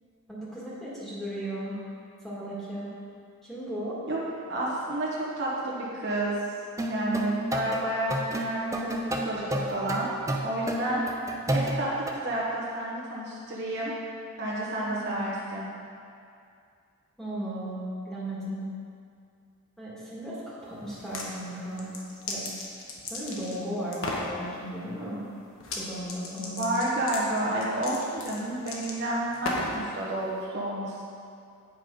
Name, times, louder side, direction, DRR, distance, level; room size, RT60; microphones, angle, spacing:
voice 1, 0.3-1.8 2.2-2.9 3.4-4.0 14.8-15.3 17.2-18.7 19.8-21.9 22.3-22.5 23.1-25.2 25.8-26.6, right 1 dB, ahead, -9 dB, 1.5 m, -36 dB
voice 2, 4.5-6.3 6.8-10.1 10.4-11.0 11.5-13.9 14.4-15.7 26.4-31.0, right 1 dB, 55° right, -6 dB, 1.2 m, -30 dB
sound 1, 6.8-12.1, right 1 dB, 15° right, 0.5 m, -30 dB
sound 2, 20.9-21.3 21.7-23.6 23.9-24.3 25.6-25.8 26.1-29.8, left 3 dB, 70° left, 1.2 m, -35 dB
8.7 x 5.3 x 5.2 m, 2.4 s
head